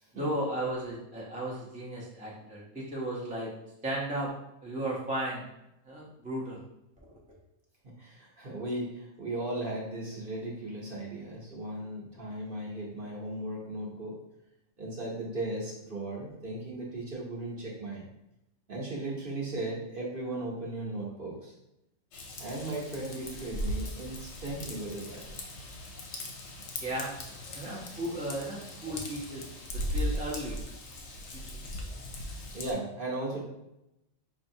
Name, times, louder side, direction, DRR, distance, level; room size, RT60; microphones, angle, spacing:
voice 1, 0.1-3.5 3.8-4.3 4.6-5.4 5.9-6.6 26.6-27.1 27.5-29.5 29.7-30.6 31.3-31.6 32.5-32.6, right 1 dB, 10° right, -5 dB, 0.5 m, -35 dB
voice 2, 7.8-14.2 14.8-18.1 18.7-21.5 22.4-25.5 32.5-33.4, right 2 dB, 45° right, -5 dB, 1.0 m, -37 dB
Raindrop / Vehicle horn car horn honking / Trickle dribble, 22.1-32.7, left 1 dB, 65° left, 0.9 m, -38 dB
5.2 x 2.6 x 2.7 m, 0.87 s
omnidirectional pair, 1.4 m